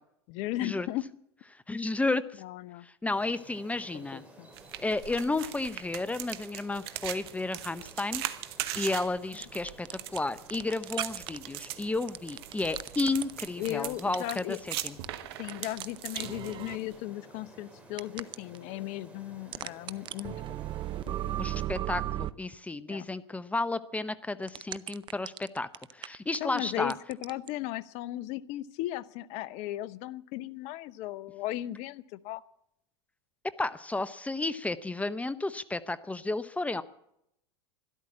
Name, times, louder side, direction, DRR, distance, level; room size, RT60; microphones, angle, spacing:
voice 1, 0.3-1.1 2.4-2.9 3.9-4.5 13.6-14.6 15.4-20.3 21.1-21.4 22.9-23.1 26.4-26.9 27.2-32.4, left 15 dB, 55° left, 18 dB, 0.7 m, -36 dB
voice 2, 1.5-2.4 2.8-4.2 4.8-8.2 8.8-9.9 10.1-15.0 21.4-26.9 33.6-36.8, left 2 dB, 10° left, 15 dB, 0.6 m, -32 dB
sound 1, 3.1-21.7, right 1 dB, 10° right, 4.4 m, -54 dB
sound 2, 4.5-17.0, right 13 dB, 65° right, 1.2 m, -40 dB
sound 3, 9.4-10.2 10.5-11.4 11.6-11.7 12.1-14.4 14.7-15.1 15.5-16.8 18.0-18.6 19.5-22.3 24.4-26.6 26.9-27.5, right 13 dB, 35° right, 0.6 m, -35 dB
13.0 x 12.0 x 8.6 m, 0.77 s
hypercardioid pair, 95°, 14 cm